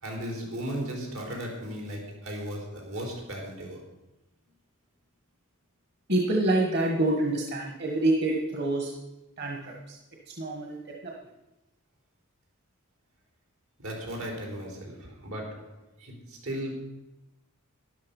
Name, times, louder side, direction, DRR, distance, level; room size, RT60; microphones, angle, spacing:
voice 1, 0.0-3.8 13.8-16.7, equal, 85° right, 0 dB, 4.2 m, -36 dB
voice 2, 6.1-8.9 9.4-9.7 10.4-10.8, right 2 dB, 55° right, 0 dB, 1.5 m, -26 dB
12.5 x 11.5 x 5.4 m, 0.97 s
head